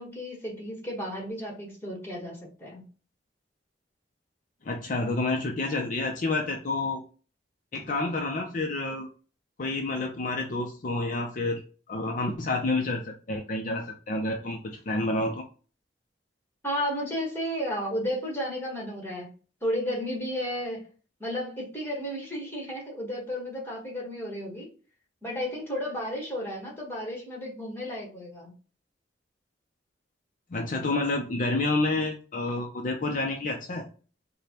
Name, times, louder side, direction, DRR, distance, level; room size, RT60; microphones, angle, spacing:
voice 1, 0.0-2.8 16.6-19.3 19.6-20.8 21.2-24.7 25.2-28.5, equal, 15° left, -2 dB, 1.3 m, -33 dB
voice 2, 4.6-7.0 7.7-9.1 9.6-11.6 11.9-15.4 30.5-33.8, left 2 dB, 50° left, 1 dB, 0.5 m, -29 dB
5.0 x 2.2 x 2.9 m, 0.37 s
head